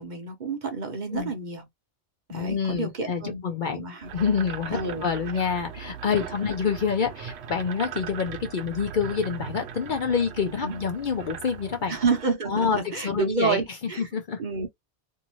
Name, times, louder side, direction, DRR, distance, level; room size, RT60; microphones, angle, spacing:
voice 1, 0.0-1.6 2.3-3.4 3.7-4.1 4.7-5.1 10.6-10.8 11.9-14.1 14.4-14.7, right 4 dB, 45° right, 0.8 m, -29 dB
voice 2, 2.3-3.8 4.1-11.9 12.5-13.6 14.0-14.4, left 6 dB, 55° left, 0.6 m, -27 dB
sound 1, 4.0-12.3, right 8 dB, 75° right, 0.9 m, -39 dB
2.7 x 2.5 x 2.9 m
omnidirectional pair, 1.1 m